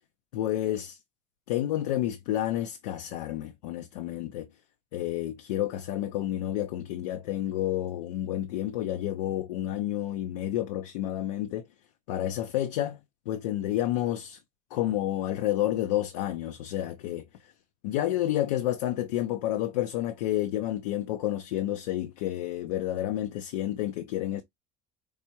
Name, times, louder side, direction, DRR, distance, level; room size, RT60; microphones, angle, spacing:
voice 1, 0.3-1.0 1.5-4.5 4.9-11.7 12.1-13.0 13.3-14.4 14.7-17.5 17.8-24.4, left 13 dB, 90° left, 0.4 m, -30 dB
4.7 x 2.2 x 2.8 m
supercardioid pair, 90°, 20 cm